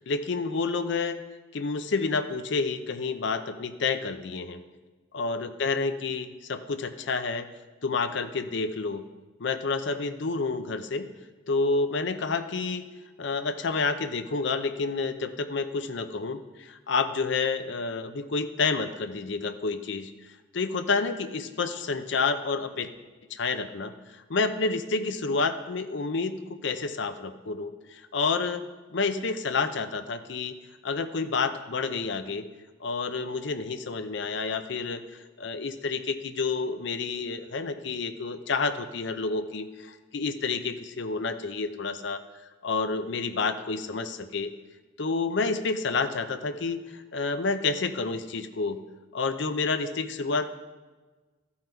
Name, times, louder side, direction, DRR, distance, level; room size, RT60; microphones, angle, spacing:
voice 1, 0.1-1.2 1.5-4.6 5.1-7.5 7.8-9.0 9.4-11.1 11.5-12.8 13.2-20.1 20.5-22.9 23.3-23.9 24.3-28.6 28.9-30.5 30.8-32.4 32.8-35.0 35.4-42.2 42.6-44.5 45.0-48.8 49.1-50.5, left 4 dB, 65° left, 9 dB, 0.6 m, -29 dB
14.0 x 5.7 x 4.5 m, 1.3 s
head